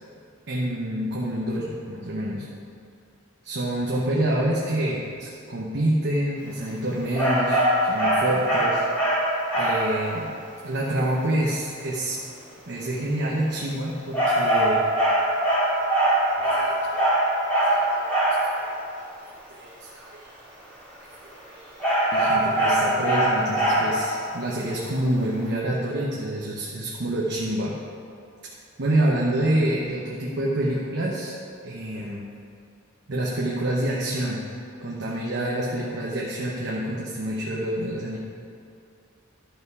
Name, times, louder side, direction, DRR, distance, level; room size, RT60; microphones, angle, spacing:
voice 1, 0.5-2.5 3.4-8.8 9.5-10.3 10.6-12.2 12.7-14.8 16.4-17.0 17.6-18.1 18.5-18.7 18.9-20.2 21.4-27.7 28.8-31.4 31.6-32.3 33.1-34.4 34.8-38.2, right 1 dB, 55° right, -4 dB, 1.0 m, -27 dB
sound 1, 7.2-9.9 14.1-18.5 21.8-24.1, right 1 dB, 5° left, 2.3 m, -22 dB
11.5 x 5.7 x 4.8 m, 2.5 s
head